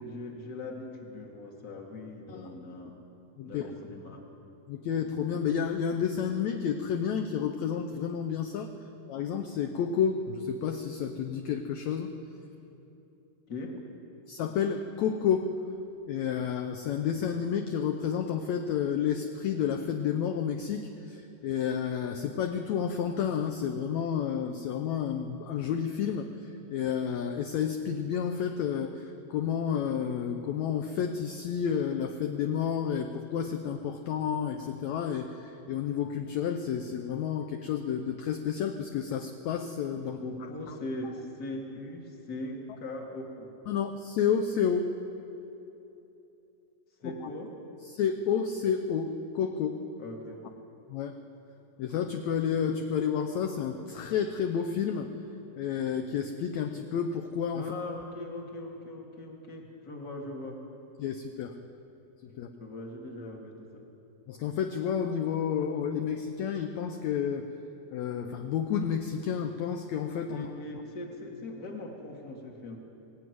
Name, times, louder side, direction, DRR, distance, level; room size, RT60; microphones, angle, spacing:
voice 1, 0.0-3.0 3.4-4.3 13.5-13.8 40.2-43.6 47.0-47.5 50.0-50.4 57.5-60.7 62.6-63.9 70.3-72.8, left 2 dB, 30° left, 1 dB, 2.3 m, -40 dB
voice 2, 4.7-8.7 9.1-12.1 14.3-15.5 16.1-40.2 43.7-44.9 47.0-47.1 47.9-49.8 50.9-51.2 51.8-55.1 55.6-57.7 61.0-61.5 62.2-62.5 64.3-67.5 67.9-70.5, left 7 dB, 70° left, 6 dB, 1.8 m, -30 dB
18.5 x 18.5 x 9.4 m, 2.9 s
omnidirectional pair, 4.0 m